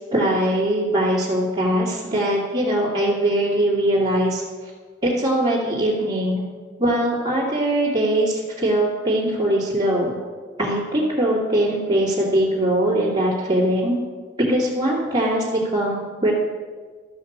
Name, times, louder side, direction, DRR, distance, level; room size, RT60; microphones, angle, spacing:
voice 1, 0.1-4.4 5.0-6.4 6.8-10.2 10.6-14.0 14.5-16.3, right 1 dB, 25° right, -10 dB, 2.4 m, -21 dB
12.5 x 5.6 x 7.3 m, 1.5 s
head